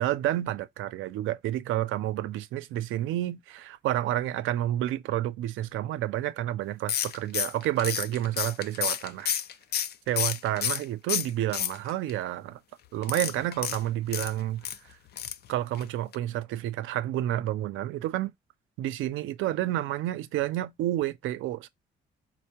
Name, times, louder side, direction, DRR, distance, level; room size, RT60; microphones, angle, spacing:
voice 1, 0.0-9.3 10.1-12.6 12.9-14.7 15.5-18.3 18.8-21.7, right 13 dB, 85° right, 0.5 m, -30 dB
sound 1, 6.9-10.8 11.1-12.1 13.0-14.8 15.2-15.5 15.8-15.9 16.1-16.2, left 9 dB, 55° left, 0.4 m, -30 dB
4.2 x 2.1 x 2.8 m
cardioid pair, 90°, 20 cm